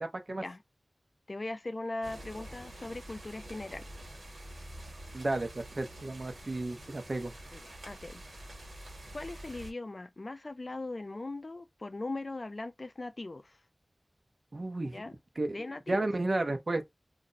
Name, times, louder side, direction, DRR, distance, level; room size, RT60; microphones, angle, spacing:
voice 1, 0.3-0.6 1.3-3.9 7.5-8.2 9.1-13.6 14.9-15.2 15.5-16.3, left 2 dB, 55° left, 0.4 m, -40 dB
sound 1, 2.0-9.7, right 1 dB, 85° right, 1.3 m, -47 dB
voice 2, 5.1-7.3 14.5-15.0 15.4-15.5 15.9-16.8, right 2 dB, 60° right, 0.8 m, -32 dB
2.5 x 2.1 x 3.9 m
wide cardioid pair, 55°, 0 cm